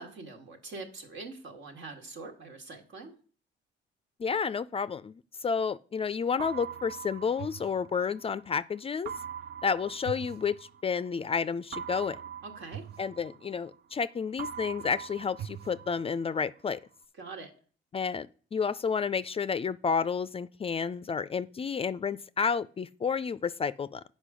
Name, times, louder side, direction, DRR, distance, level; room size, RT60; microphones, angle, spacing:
voice 1, 0.0-3.1 12.4-12.8 17.2-17.5, right 3 dB, 70° right, 1.9 m, -43 dB
voice 2, 4.2-9.1 9.6-10.6 10.8-12.2 13.0-16.8 17.9-24.0, left 6 dB, 30° left, 0.3 m, -31 dB
sound 1, 6.4-8.5 9.1-11.1 11.7-14.0 14.4-16.5, right 8 dB, 55° right, 0.5 m, -42 dB
8.2 x 5.3 x 6.2 m
cardioid pair, 90°, 20 cm